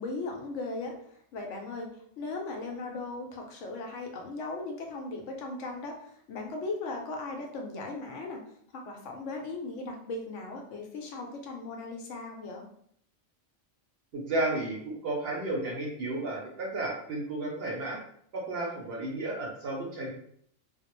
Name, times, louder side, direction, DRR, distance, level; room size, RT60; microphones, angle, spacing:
voice 1, 0.0-8.4 8.7-12.7, left 3 dB, 75° left, 2 dB, 0.9 m, -38 dB
voice 2, 14.1-18.0 18.3-20.1, right 2 dB, 60° right, -2 dB, 0.7 m, -33 dB
2.3 x 2.0 x 2.9 m, 0.66 s
omnidirectional pair, 1.3 m